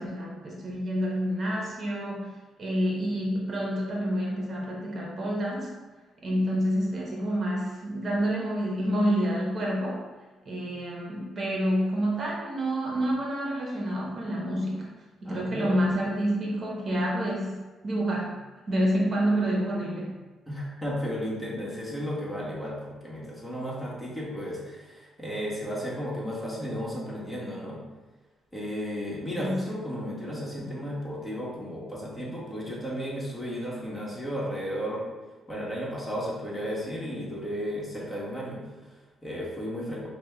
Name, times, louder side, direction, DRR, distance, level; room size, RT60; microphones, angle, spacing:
voice 1, 0.0-5.7 6.2-10.0 10.5-14.9 15.2-17.6 17.8-18.3 18.7-20.2 29.4-29.7, equal, 45° right, -2 dB, 0.8 m, -28 dB
voice 2, 15.2-15.9 20.5-27.8 28.5-35.1 35.5-40.1, equal, 15° left, -5 dB, 1.3 m, -34 dB
5.2 x 2.2 x 3.5 m, 1.3 s
cardioid pair, 90°, 0 cm